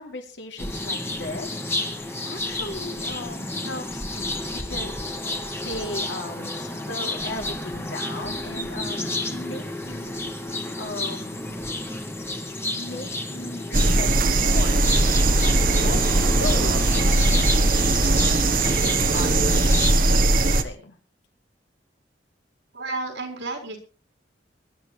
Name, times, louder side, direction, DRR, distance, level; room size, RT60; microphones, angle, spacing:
voice 1, 0.0-1.6 1.9-5.0 5.6-10.2 10.8-11.6 12.8-15.5 15.8-21.0, left 2 dB, 80° left, 3 dB, 3.2 m, -37 dB
sound 1, 0.6-19.9, left 1 dB, 15° left, 1.6 m, -31 dB
sound 2, 13.7-20.6, right 2 dB, 50° right, 1.3 m, -20 dB
voice 2, 22.7-23.8, right 3 dB, 85° right, 0 dB, 4.7 m, -31 dB
23.0 x 11.5 x 3.3 m, 0.33 s
head